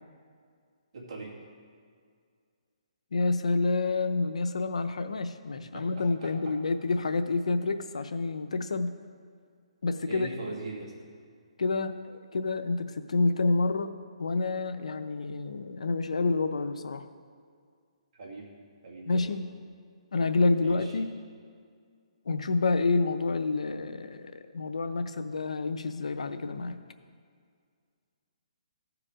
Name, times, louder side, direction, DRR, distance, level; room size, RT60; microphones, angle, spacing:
voice 1, 0.9-1.3 5.5-6.5 10.1-10.9 18.1-18.5 18.8-19.4 20.6-20.9, right 2 dB, 55° right, -2 dB, 2.4 m, -41 dB
voice 2, 3.1-8.9 9.8-10.3 11.6-13.9 14.2-17.1 19.1-19.4 20.1-21.1 22.3-26.8, left 3 dB, 85° left, 10 dB, 0.6 m, -28 dB
14.5 x 4.9 x 4.9 m, 2.1 s
hypercardioid pair, 155°, 3 cm